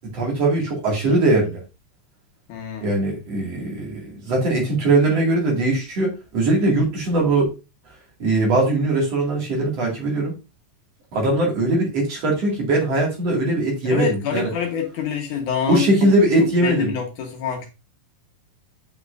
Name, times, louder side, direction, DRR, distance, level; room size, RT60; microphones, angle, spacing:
voice 1, 0.1-1.6 2.8-7.5 8.2-10.3 11.1-14.5 15.7-16.9, right 2 dB, 50° right, -2 dB, 3.0 m, -20 dB
voice 2, 2.5-2.9 13.9-17.7, left 7 dB, 65° left, 2 dB, 2.5 m, -26 dB
8.2 x 5.7 x 2.5 m, 0.28 s
omnidirectional pair, 4.1 m